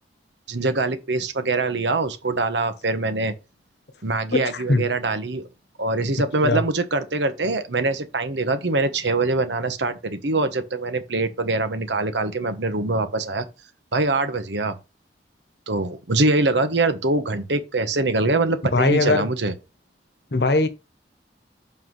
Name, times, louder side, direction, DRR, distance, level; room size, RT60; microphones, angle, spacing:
voice 1, 0.5-3.3 4.0-5.4 5.8-13.5 13.9-14.8 15.7-19.5, right 2 dB, 85° right, 1.1 m, -23 dB
voice 2, 4.3-4.8 6.4-6.6 18.7-19.3 20.3-20.7, left 2 dB, 65° left, 1.0 m, -20 dB
7.6 x 5.6 x 3.1 m
head